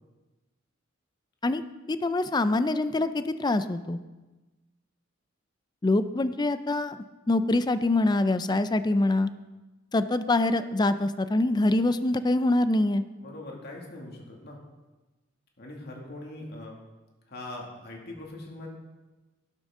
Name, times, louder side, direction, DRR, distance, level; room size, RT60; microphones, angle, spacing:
voice 1, 1.9-4.0 5.8-9.3 9.9-13.0, left 2 dB, 20° left, 12 dB, 0.4 m, -25 dB
voice 2, 13.2-14.6 15.6-16.8 17.3-18.7, left 1 dB, 55° left, -1 dB, 2.2 m, -41 dB
12.0 x 11.5 x 3.7 m, 1.2 s
head